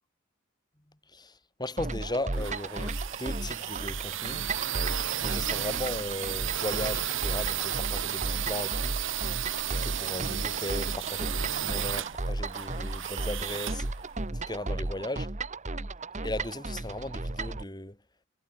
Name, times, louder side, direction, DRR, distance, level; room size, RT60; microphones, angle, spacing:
voice 1, 1.1-4.5 5.2-9.0 9.8-13.9 14.5-15.3 16.2-18.0, left 1 dB, 20° left, 3.7 m, -37 dB
sound 1, 1.8-17.6, right 2 dB, 35° right, 1.3 m, -35 dB
sound 2, 1.9-14.7, right 11 dB, 65° right, 1.3 m, -34 dB
head